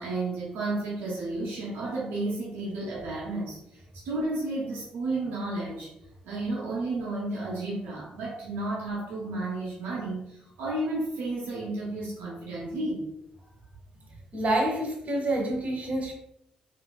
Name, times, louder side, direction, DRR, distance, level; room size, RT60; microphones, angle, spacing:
voice 1, 0.0-3.8 4.0-5.9 6.2-13.0, right 2 dB, 65° right, -5 dB, 0.6 m, -32 dB
voice 2, 14.3-16.1, right 1 dB, 40° right, 0 dB, 0.9 m, -27 dB
3.5 x 2.7 x 2.2 m, 0.79 s
figure-of-eight pair, 40°, 4 cm